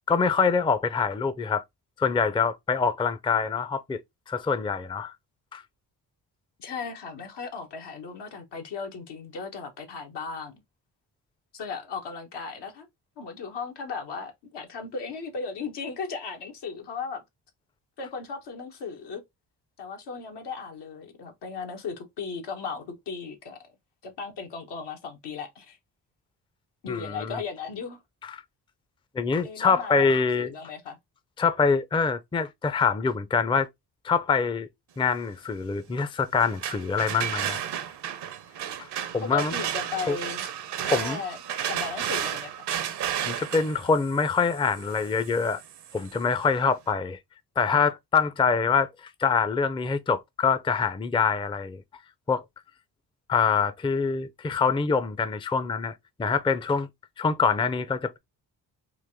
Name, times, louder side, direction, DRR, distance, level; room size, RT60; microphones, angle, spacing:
voice 1, 0.1-1.6 2.0-4.0 4.3-5.1 5.5-5.6 26.9-27.4 28.2-28.3 29.1-30.5 31.4-33.7 34.0-34.7 35.0-37.6 38.8-38.9 39.1-39.5 40.1-40.2 40.8-41.2 43.2-45.6 45.9-47.2 47.6-51.8 52.3-52.4 53.3-56.9 57.2-58.2, left 5 dB, 10° left, 0.4 m, -25 dB
voice 2, 6.6-10.6 11.5-12.9 13.2-17.2 18.0-19.2 19.8-23.6 24.0-25.8 26.8-28.0 29.4-31.0 39.2-40.4 40.9-41.4 41.6-42.7, left 5 dB, 75° left, 1.2 m, -36 dB
sound 1, 36.3-46.2, right 10 dB, 75° right, 0.7 m, -33 dB
3.8 x 2.5 x 3.4 m
supercardioid pair, 55°, 41 cm